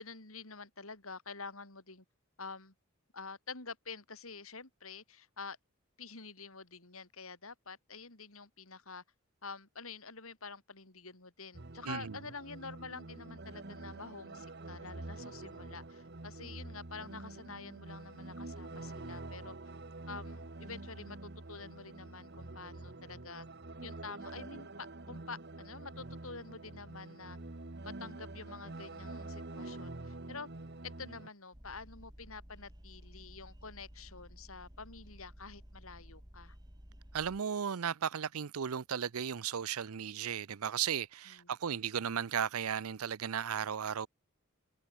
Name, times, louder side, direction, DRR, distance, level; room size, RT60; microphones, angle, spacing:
voice 1, 0.0-2.0 2.4-2.7 3.1-5.6 6.0-9.0 9.4-19.5 20.1-23.5 23.8-27.4 27.8-30.5 30.8-36.6 41.3-41.5, left 4 dB, 80° left, 4.7 m, -48 dB
sound 1, 11.5-31.3, right 2 dB, 50° right, 1.2 m, -47 dB
voice 2, 11.8-12.2 37.1-44.1, right 8 dB, 90° right, 0.6 m, -35 dB
sound 2, 31.5-37.4, equal, 20° right, 3.1 m, -54 dB
head